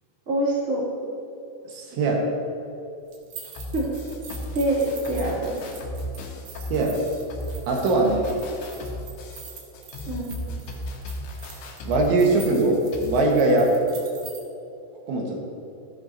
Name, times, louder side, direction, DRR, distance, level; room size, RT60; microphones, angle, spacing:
voice 1, 0.3-0.9 3.7-3.9 4.5-5.9 10.1-10.3, right 1 dB, 25° right, -6 dB, 2.0 m, -25 dB
voice 2, 1.7-2.2 6.7-7.0 7.7-8.3 11.9-13.7 15.1-15.4, right 2 dB, 80° right, -1 dB, 3.7 m, -21 dB
sound 1, 3.1-14.4, right 6 dB, 65° right, 2.0 m, -45 dB
sound 2, 3.6-13.2, left 1 dB, 85° left, 3.6 m, -36 dB
15.5 x 10.5 x 2.8 m, 2.8 s
omnidirectional pair, 5.2 m